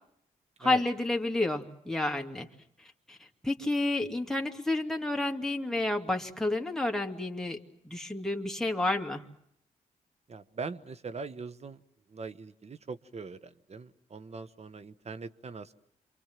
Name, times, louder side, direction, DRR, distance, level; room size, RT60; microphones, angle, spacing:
voice 1, 0.6-2.5 3.1-3.2 3.4-7.6 7.8-9.3, left 2 dB, 5° left, 3 dB, 2.7 m, -30 dB
voice 2, 10.3-11.8 12.1-15.7, right 4 dB, 45° right, 13 dB, 1.4 m, -41 dB
27.5 x 24.5 x 7.7 m, 0.72 s
cardioid pair, 60°, 15 cm